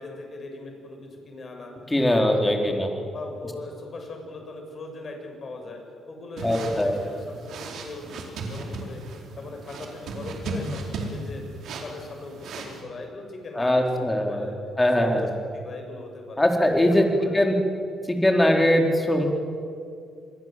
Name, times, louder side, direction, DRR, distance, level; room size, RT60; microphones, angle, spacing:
voice 1, 0.0-1.7 2.0-2.8 3.1-5.8 6.1-9.0 9.4-11.4 11.8-13.9 14.1-14.6 15.0-16.5 16.8-17.3, left 2 dB, 45° left, 3 dB, 7.0 m, -39 dB
voice 2, 1.9-2.9 6.4-7.0 13.5-14.5 14.8-15.3 16.4-17.1 17.3-17.5 18.1-19.3, left 1 dB, 15° left, 3 dB, 4.4 m, -21 dB
sound 1, 6.4-12.8, right 2 dB, 70° right, 4.4 m, -36 dB
27.5 x 21.5 x 7.8 m, 2.3 s
cardioid pair, 90°, 0 cm